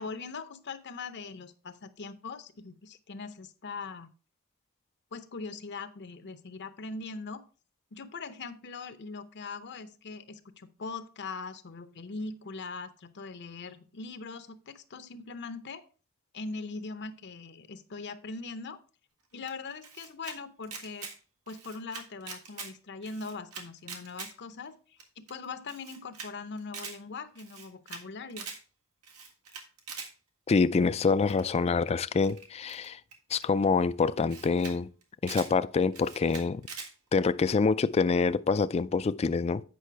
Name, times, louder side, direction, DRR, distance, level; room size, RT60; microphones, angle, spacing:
voice 1, 0.0-4.1 5.1-7.4 7.9-15.8 16.3-18.8 19.3-21.1 21.5-28.5, left 4 dB, 50° left, 0.7 m, -41 dB
Camera, 19.5-20.4 20.6-21.1 21.5-22.7 23.0-24.3 24.7-24.8 25.0-25.1 25.3-25.4 25.7-26.3 26.6-27.0 27.4-28.0 28.3-28.6 29.0-30.1 31.3-31.6 32.2-33.4 34.0-34.1 34.3-34.7 35.0-35.5 35.9-36.9, right 5 dB, 90° right, 1.7 m, -43 dB
voice 2, 30.5-33.0 33.3-34.9 35.2-36.6 37.1-39.6, left 4 dB, 30° left, 0.3 m, -26 dB
8.4 x 5.5 x 4.5 m
head